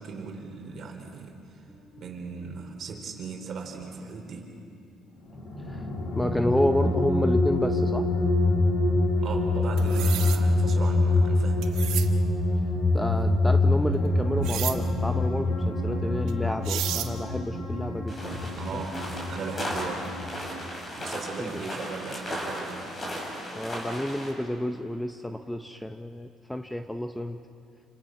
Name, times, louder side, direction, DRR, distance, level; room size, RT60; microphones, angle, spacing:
voice 1, 0.0-1.3 2.0-4.5 9.2-11.6 18.6-20.1 20.5-20.6 21.0-22.9, right 5 dB, 45° right, 2 dB, 4.1 m, -38 dB
sound 1, 1.7-1.9 5.3-20.3, left 2 dB, 55° left, 6.0 m, -25 dB
voice 2, 6.1-8.1 12.9-18.8 21.4-21.6 23.5-27.4, left 1 dB, 5° left, 7 dB, 0.7 m, -30 dB
sound 2, 9.8-10.4 11.6-12.1 14.4-14.8 16.3-16.4 16.6-17.1, right 12 dB, 80° right, 1.4 m, -32 dB
sound 3, 18.1-24.3, equal, 25° left, 6.1 m, -36 dB
29.0 x 27.0 x 6.1 m, 2.5 s
cardioid pair, 140°, 0 cm